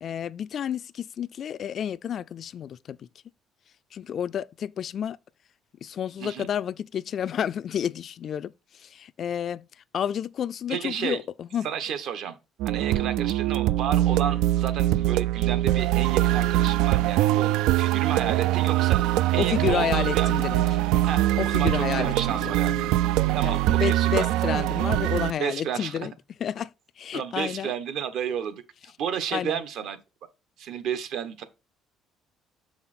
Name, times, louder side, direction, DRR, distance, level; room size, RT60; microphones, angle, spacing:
voice 1, 0.0-3.1 3.9-5.2 5.8-9.7 9.9-11.7 12.9-13.1 19.4-20.6 21.4-22.9 23.4-26.1 26.4-26.7 27.0-27.7 29.3-29.6, left 9 dB, 50° left, 0.3 m, -30 dB
voice 2, 10.7-11.2 11.6-12.4 12.6-20.3 21.1-23.0 23.3-24.3 25.4-26.0 27.1-28.6 29.0-30.0 30.6-31.4, right 8 dB, 70° right, 1.1 m, -32 dB
sound 1, 12.6-25.3, right 15 dB, 85° right, 0.3 m, -23 dB
6.5 x 5.6 x 4.3 m
cardioid pair, 125°, 0 cm